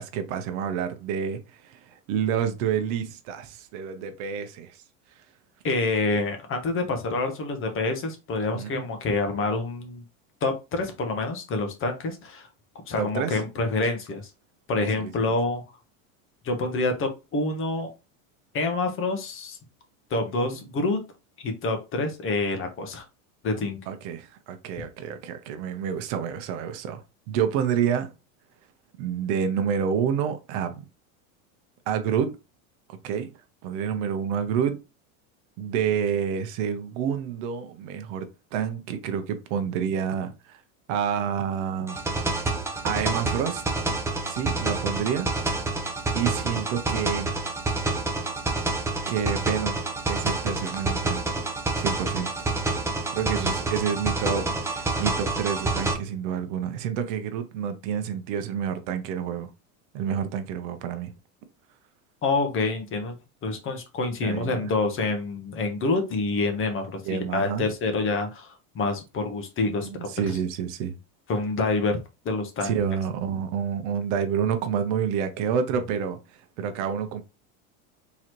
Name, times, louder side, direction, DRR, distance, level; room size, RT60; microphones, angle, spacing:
voice 1, 0.0-4.8 8.5-8.9 13.0-13.4 14.7-15.3 20.4-20.6 23.9-27.0 27.3-28.1 29.0-30.8 31.9-32.3 32.9-33.3 33.6-34.8 35.6-40.6 40.9-42.0 42.8-43.6 44.3-45.3 46.1-47.3 49.1-49.8 50.1-51.4 51.8-52.5 53.1-59.5 59.9-61.1 64.2-64.7 67.0-67.7 69.8-71.0 72.6-77.2, right 8 dB, 65° right, 0.9 m, -28 dB
voice 2, 5.6-10.0 10.4-12.5 12.9-14.3 14.7-15.6 16.4-17.9 18.5-19.6 20.1-21.0 21.4-23.0 23.4-23.8 62.2-63.1 63.4-70.2 71.3-72.0 72.2-72.8, left 3 dB, 30° left, 1.0 m, -27 dB
sound 1, 41.9-55.9, right 2 dB, 5° right, 0.5 m, -28 dB
3.8 x 3.1 x 3.0 m
supercardioid pair, 130°, 41 cm